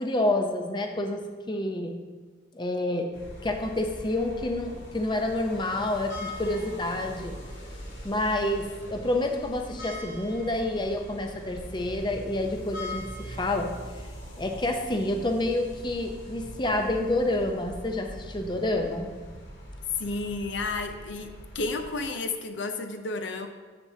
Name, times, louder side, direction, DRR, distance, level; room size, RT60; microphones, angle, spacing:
voice 1, 0.0-2.0 2.5-3.1 3.4-7.3 8.0-13.7 14.4-19.1, left 1 dB, 25° left, 4 dB, 0.6 m, -28 dB
sound 1, 3.1-22.0, equal, 85° left, 2.1 m, -42 dB
voice 2, 20.0-23.5, left 3 dB, 65° left, 6 dB, 0.6 m, -32 dB
10.0 x 7.1 x 2.8 m, 1.4 s
head